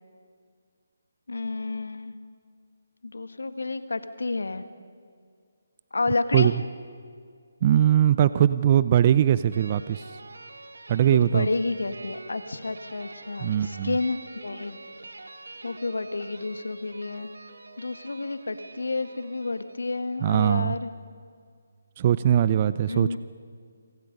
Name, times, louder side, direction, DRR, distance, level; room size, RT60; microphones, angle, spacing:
voice 1, 1.3-2.2 3.0-4.6 5.9-6.6 11.1-14.8 15.6-17.3 17.8-20.9 22.9-23.2, left 3 dB, 80° left, 10 dB, 1.8 m, -30 dB
voice 2, 7.6-10.0 10.9-11.5 13.4-14.0 20.2-20.8 22.0-23.2, right 10 dB, 35° right, 15 dB, 0.5 m, -21 dB
sound 1, 9.5-20.3, right 3 dB, 85° right, 2.2 m, -46 dB
27.5 x 25.5 x 5.4 m, 2.1 s
figure-of-eight pair, 155°, 0 cm